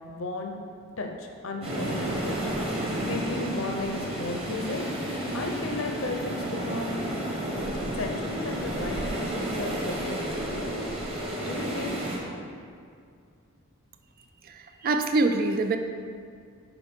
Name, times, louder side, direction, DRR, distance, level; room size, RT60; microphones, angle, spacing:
voice 1, 0.1-0.6 1.0-2.4 2.8-4.9 5.3-7.1 8.0-11.9, left 2 dB, 70° left, 2 dB, 0.7 m, -35 dB
sound 1, 1.6-12.2, right 1 dB, 25° right, 1.2 m, -31 dB
voice 2, 14.4-15.8, right 3 dB, 40° right, 7 dB, 0.3 m, -25 dB
9.0 x 5.5 x 3.6 m, 2.2 s
head